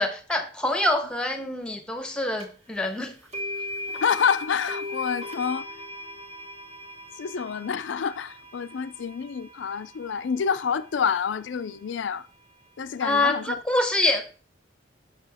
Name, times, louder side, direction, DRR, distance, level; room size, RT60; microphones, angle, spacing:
voice 1, 0.0-3.1 13.0-14.2, left 1 dB, 5° left, 1.0 m, -25 dB
sound 1, 2.4-2.5 3.3-11.4, left 1 dB, 35° right, 1.4 m, -38 dB
voice 2, 4.0-5.7 7.2-12.3 12.8-13.6, left 6 dB, 80° left, 0.4 m, -28 dB
7.4 x 6.0 x 3.5 m
head